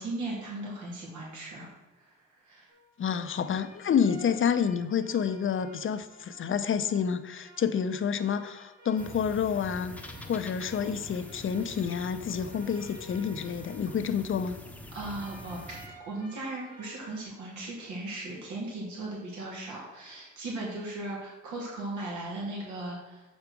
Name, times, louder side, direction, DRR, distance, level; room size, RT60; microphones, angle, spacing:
voice 1, 0.0-1.7 2.4-2.7 14.9-15.6 16.1-23.2, right 2 dB, 75° right, -3 dB, 3.0 m, -37 dB
sound 1, 2.7-14.7 15.0-17.2, left 1 dB, 90° right, 3.2 m, -52 dB
voice 2, 3.0-9.9 10.3-14.5, left 7 dB, 40° left, 11 dB, 0.6 m, -29 dB
sound 2, 9.0-15.9, left 1 dB, 5° left, 1.0 m, -45 dB
7.2 x 5.2 x 6.0 m, 1.1 s
cardioid pair, 90°, 30 cm